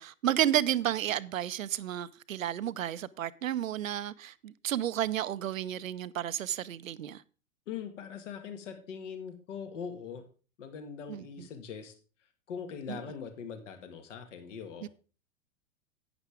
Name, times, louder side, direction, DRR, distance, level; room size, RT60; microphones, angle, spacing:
voice 1, 0.0-7.2 11.1-11.5 12.9-13.0 14.8-14.9, right 11 dB, 70° right, 0.6 m, -32 dB
voice 2, 7.7-10.2 10.6-11.9 12.5-14.9, left 7 dB, 55° left, 1.9 m, -41 dB
11.0 x 8.9 x 3.5 m
figure-of-eight pair, 100°, 42 cm